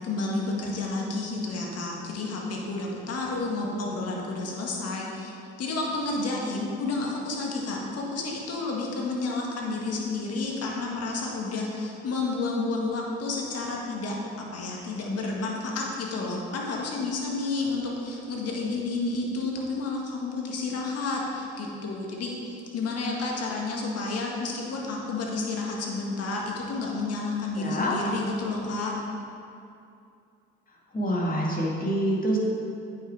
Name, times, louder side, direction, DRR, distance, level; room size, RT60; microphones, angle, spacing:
voice 1, 0.0-5.3 5.6-28.9, left 3 dB, 55° left, -2 dB, 1.7 m, -30 dB
voice 2, 27.6-28.0 30.9-32.4, equal, 30° left, -3 dB, 2.1 m, -26 dB
8.6 x 5.8 x 4.8 m, 2.6 s
hypercardioid pair, 55°, 29 cm